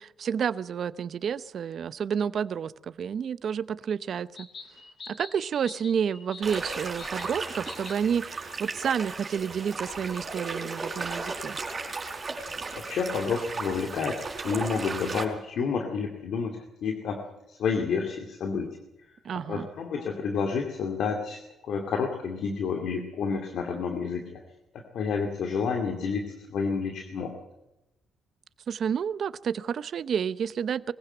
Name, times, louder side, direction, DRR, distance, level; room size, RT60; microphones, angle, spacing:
voice 1, 0.0-4.5 5.1-11.6 19.2-19.7 28.7-30.9, right 7 dB, 60° right, 16 dB, 0.7 m, -30 dB
sound 1, 4.4-8.2, left 4 dB, 50° left, 4.0 m, -46 dB
sound 2, 6.4-15.2, right 3 dB, 35° right, 4.8 m, -35 dB
voice 2, 12.9-17.2 17.5-18.7 19.3-24.4 24.7-27.3, left 5 dB, 70° left, 3 dB, 2.5 m, -30 dB
21.5 x 15.5 x 7.9 m, 0.94 s
cardioid pair, 90°, 0 cm